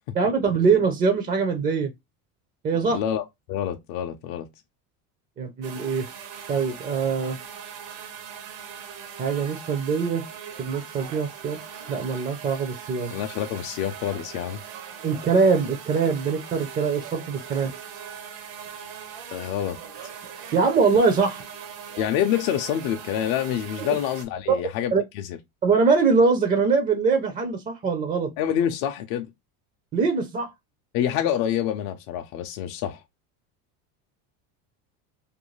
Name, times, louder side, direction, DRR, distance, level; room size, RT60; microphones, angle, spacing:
voice 1, 0.1-1.9 2.6-3.0 5.4-6.1 6.5-7.4 9.2-10.2 10.6-11.6 11.9-13.1 15.0-17.7 20.5-21.4 23.8-23.9 24.5-24.6 24.9-25.0 25.6-28.3 29.9-30.5, right 5 dB, 25° right, 0.4 m, -22 dB
voice 2, 2.9-4.5 13.1-14.6 19.3-19.8 22.0-25.4 28.4-29.3 30.9-33.0, left 10 dB, 60° left, 0.5 m, -27 dB
sound 1, 5.6-24.2, right 7 dB, 75° right, 0.9 m, -40 dB
2.6 x 2.2 x 3.0 m
supercardioid pair, 115°, 41 cm